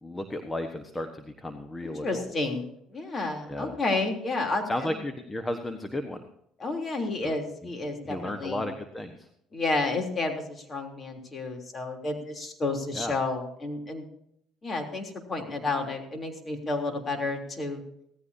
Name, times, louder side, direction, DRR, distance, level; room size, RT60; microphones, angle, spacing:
voice 1, 0.0-2.3 3.5-3.8 4.7-6.2 7.2-7.4 8.0-9.3 12.9-13.1, left 1 dB, 15° left, 6 dB, 1.3 m, -34 dB
voice 2, 1.8-4.9 6.6-8.6 9.5-14.0 14.6-17.8, left 3 dB, 35° left, 3 dB, 3.3 m, -31 dB
17.5 x 14.5 x 2.8 m, 0.75 s
supercardioid pair, 85°, 0 cm